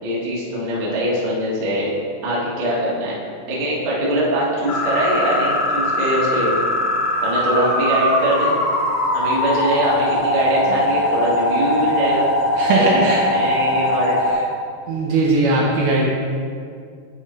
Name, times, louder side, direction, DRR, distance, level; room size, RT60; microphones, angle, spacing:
voice 1, 0.0-1.9 2.2-3.1 3.5-6.6 7.2-8.5 9.1-12.3 12.7-14.2, right 1 dB, 55° right, -7 dB, 1.5 m, -22 dB
sound 1, 4.7-14.3, left 1 dB, 85° left, 3.5 m, -21 dB
voice 2, 12.6-13.2 14.9-16.0, right 3 dB, 75° right, -3 dB, 2.5 m, -18 dB
11.0 x 5.2 x 3.2 m, 2.2 s
omnidirectional pair, 5.0 m